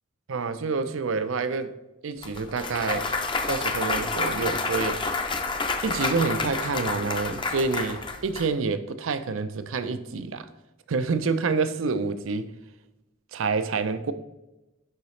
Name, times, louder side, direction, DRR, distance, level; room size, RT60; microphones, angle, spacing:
voice 1, 0.3-1.7 2.0-3.1 3.5-5.2 5.8-10.5 10.9-12.5 13.3-14.1, right 4 dB, 85° right, 0.5 m, -28 dB
Clapping / Cheering / Applause, 2.2-8.5, left 3 dB, 25° left, 0.5 m, -29 dB
10.5 x 3.9 x 3.2 m
head